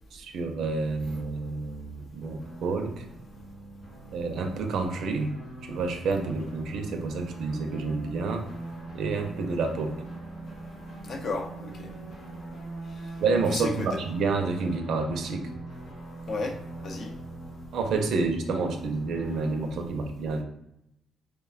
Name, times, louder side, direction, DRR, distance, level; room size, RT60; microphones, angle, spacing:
voice 1, 0.1-3.1 4.1-5.3 5.6-8.5 8.9-10.0 11.9-12.0 13.2-15.5 17.7-20.4, right 4 dB, 75° right, 5 dB, 0.4 m, -29 dB
sound 1, 0.9-19.8, right 2 dB, 85° left, 1.2 m, -42 dB
voice 2, 11.0-11.9 13.5-14.0 16.3-17.1, left 3 dB, 60° left, 3 dB, 0.4 m, -33 dB
3.1 x 2.1 x 2.3 m, 0.80 s
cardioid pair, 90°, 0 cm